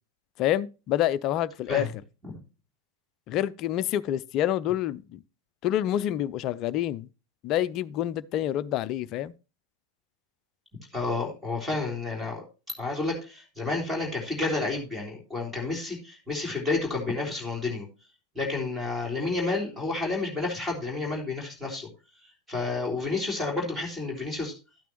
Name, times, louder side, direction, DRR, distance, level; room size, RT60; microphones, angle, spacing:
voice 1, 0.4-1.9 3.3-5.2 5.6-7.1 7.4-9.3, left 12 dB, 35° left, 0.5 m, -27 dB
voice 2, 10.9-12.5 12.8-17.9 18.4-21.9 22.2-24.5, left 3 dB, 10° right, 3.4 m, -30 dB
12.0 x 9.1 x 3.0 m
figure-of-eight pair, 90°, 0 cm